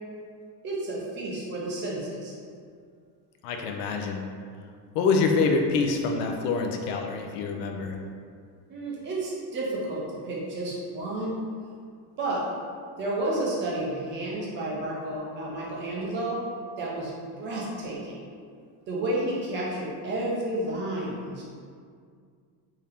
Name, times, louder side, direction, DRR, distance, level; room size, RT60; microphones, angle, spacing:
voice 1, 0.6-2.3 8.7-11.4 12.2-12.4 13.0-16.4 16.8-18.2 18.9-21.4, right 1 dB, 25° right, -5 dB, 0.4 m, -31 dB
voice 2, 3.4-4.2 4.9-8.0, left 4 dB, 75° left, 3 dB, 0.6 m, -26 dB
3.7 x 2.8 x 3.4 m, 2.1 s
cardioid pair, 170°, 49 cm